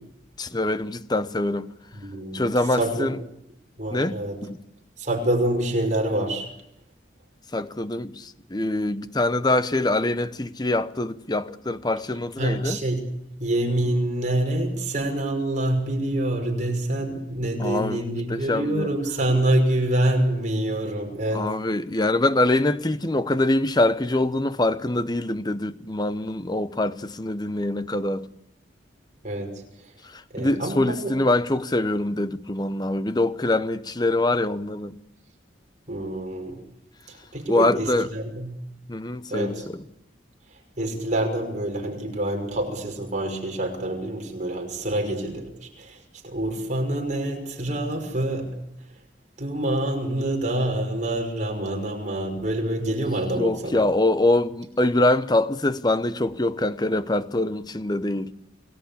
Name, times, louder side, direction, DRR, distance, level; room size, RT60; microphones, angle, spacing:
voice 1, 0.4-1.7 2.3-3.2 3.9-4.6 7.5-12.8 17.6-18.9 21.3-28.3 30.0-34.9 37.5-38.1 38.9-39.8 53.3-58.3, left 2 dB, 20° left, 0.9 m, -24 dB
voice 2, 1.9-2.4 2.8-3.1 3.8-4.4 5.0-6.5 12.4-13.0 13.4-21.5 29.2-29.5 30.3-31.1 35.9-36.6 37.1-38.6 39.3-39.6 40.8-48.5 49.4-53.8, right 1 dB, 40° right, 5.7 m, -26 dB
29.0 x 18.5 x 8.6 m
head